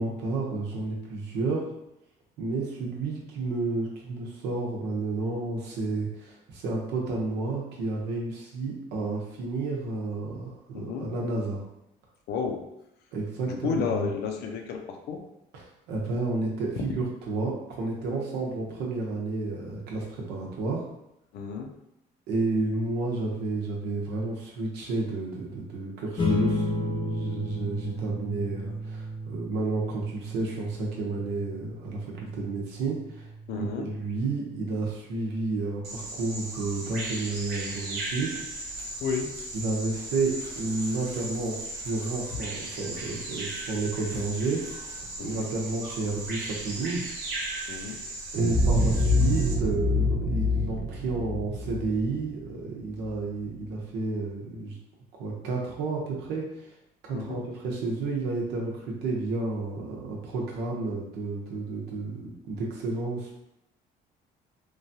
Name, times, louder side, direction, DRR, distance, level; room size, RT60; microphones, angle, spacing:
voice 1, 0.0-1.7 2.4-11.6 13.1-14.1 15.5-20.8 22.3-33.3 33.6-38.4 39.5-47.1 48.3-54.8 55.2-56.7 57.0-63.5, right 3 dB, 90° right, -2 dB, 0.8 m, -31 dB
voice 2, 10.7-11.1 12.3-12.6 13.5-15.2 21.3-21.7 33.5-33.9 39.0-39.3 45.2-45.4 47.7-48.0 57.1-57.4, left 6 dB, 75° left, 4 dB, 0.5 m, -32 dB
sound 1, 26.2-36.9, left 1 dB, 30° left, 0.6 m, -34 dB
Bird vocalization bird call bird song, 35.8-49.5, right 2 dB, 65° right, 0.9 m, -37 dB
sound 2, 48.4-53.1, left 1 dB, 35° right, 0.5 m, -26 dB
3.2 x 2.3 x 2.6 m, 0.83 s
cardioid pair, 110°, 17 cm